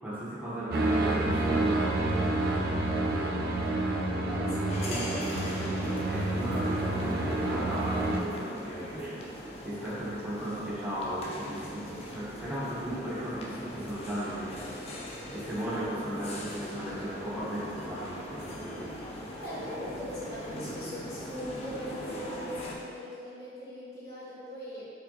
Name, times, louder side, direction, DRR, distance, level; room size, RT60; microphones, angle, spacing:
voice 1, 0.0-1.9 2.2-2.9 4.8-5.1 5.4-5.8 6.0-9.3 9.6-15.0 15.3-19.0, right 1 dB, 10° right, -8 dB, 0.6 m, -36 dB
sound 1, 0.7-8.2, right 2 dB, 55° right, 0.3 m, -29 dB
voice 2, 4.3-5.3 19.3-24.9, equal, 60° left, -10 dB, 1.0 m, -40 dB
sound 2, 4.7-22.8, left 1 dB, 35° left, 0.3 m, -41 dB
4.4 x 2.1 x 2.8 m, 2.4 s
head